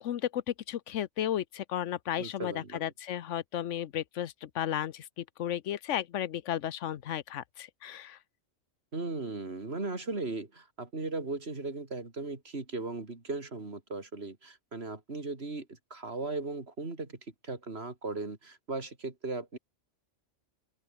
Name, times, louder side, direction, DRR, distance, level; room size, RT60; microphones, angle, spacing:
voice 1, 0.0-8.2, left 11 dB, 75° left, 1.1 m, -34 dB
voice 2, 2.2-2.8 8.9-19.6, right 3 dB, 55° right, 3.7 m, -37 dB
open air
omnidirectional pair, 1.3 m